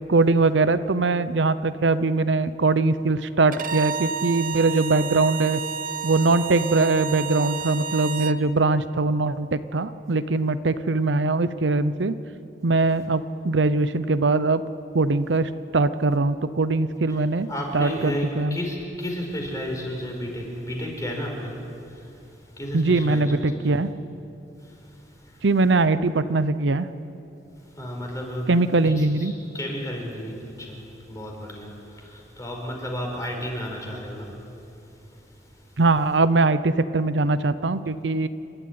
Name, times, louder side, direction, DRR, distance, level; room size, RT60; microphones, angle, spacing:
voice 1, 0.0-5.6 6.0-12.1 12.6-14.6 14.9-17.5 17.7-18.6 22.7-23.9 25.4-26.9 28.5-29.3 35.8-38.3, right 3 dB, 85° right, 13 dB, 0.8 m, -21 dB
Bowed string instrument, 3.5-8.4, right 7 dB, 50° right, 0.8 m, -31 dB
voice 2, 17.5-23.8 24.6-25.5 27.6-28.5 28.8-35.8, equal, 20° left, 0 dB, 4.7 m, -33 dB
29.5 x 12.5 x 9.5 m, 2.6 s
head